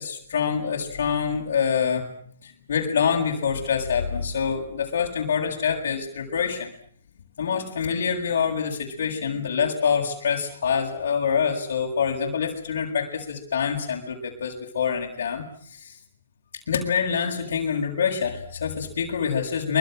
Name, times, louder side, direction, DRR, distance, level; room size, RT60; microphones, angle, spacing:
voice 1, 0.0-2.1 2.4-6.7 7.4-16.0 16.7-19.8, left 6 dB, 60° left, -3 dB, 6.9 m, -26 dB
27.0 x 26.0 x 7.8 m, 0.63 s
hypercardioid pair, 165°, 0 cm